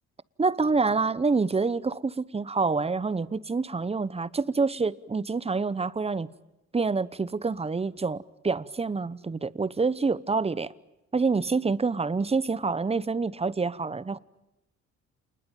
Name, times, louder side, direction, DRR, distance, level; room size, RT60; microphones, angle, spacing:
voice 1, 0.4-6.3 6.7-10.7 11.1-14.2, right 4 dB, 20° right, 0.9 m, -27 dB
28.0 x 20.5 x 9.0 m
cardioid pair, 90°, 30 cm